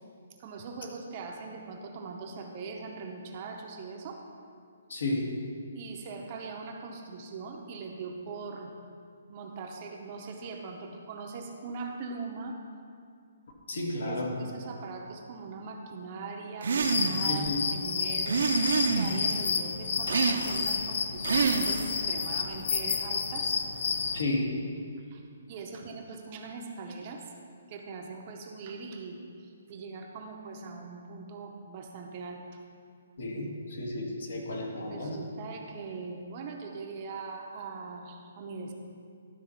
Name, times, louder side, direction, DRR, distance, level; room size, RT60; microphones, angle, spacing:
voice 1, 0.4-4.2 5.7-8.7 9.3-12.6 13.7-23.6 25.0-27.2 27.7-32.6 34.8-38.7, right 4 dB, 25° right, 2 dB, 0.7 m, -41 dB
voice 2, 4.9-5.3 13.7-14.3 17.2-17.6 24.1-24.5 33.2-35.2, left 2 dB, 70° left, 0 dB, 1.7 m, -32 dB
sound 1, 16.6-17.4 18.3-19.3 20.1-20.8 21.2-22.0, right 5 dB, 65° right, 0.7 m, -27 dB
sound 2, 16.8-24.2, left 5 dB, 45° left, 0.5 m, -30 dB
12.0 x 4.2 x 5.7 m, 2.3 s
hypercardioid pair, 175°, 0 cm